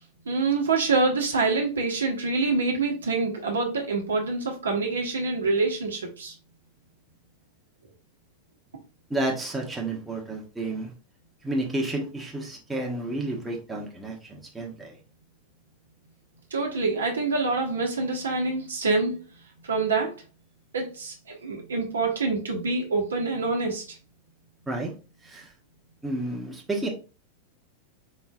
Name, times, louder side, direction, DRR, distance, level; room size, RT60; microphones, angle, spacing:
voice 1, 0.3-6.3 16.5-19.2 19.7-20.1 20.7-23.8, right 3 dB, 70° right, 2 dB, 1.0 m, -26 dB
voice 2, 9.1-10.9 11.4-15.0 24.7-24.9 25.2-25.5 26.0-26.9, right 2 dB, 10° right, 0 dB, 1.0 m, -31 dB
4.3 x 3.8 x 2.4 m, 0.33 s
figure-of-eight pair, 90°, 0 cm